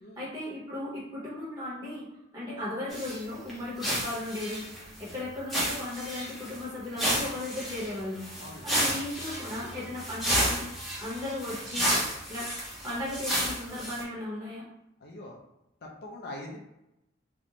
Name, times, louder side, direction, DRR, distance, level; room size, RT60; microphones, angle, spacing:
voice 1, 0.2-2.1 2.3-8.3 8.6-10.6 11.0-11.9 12.3-12.5 12.8-14.6, left 1 dB, 20° right, -7 dB, 0.9 m, -36 dB
sound 1, 2.9-3.2 3.5-3.6 3.8-5.1 5.5-6.6 6.9-14.0, equal, ahead, 0.6 m, -31 dB
voice 2, 8.4-8.7 15.0-15.4 15.8-16.6, left 1 dB, 50° left, -1 dB, 0.4 m, -42 dB
2.5 x 2.1 x 2.8 m, 0.88 s
head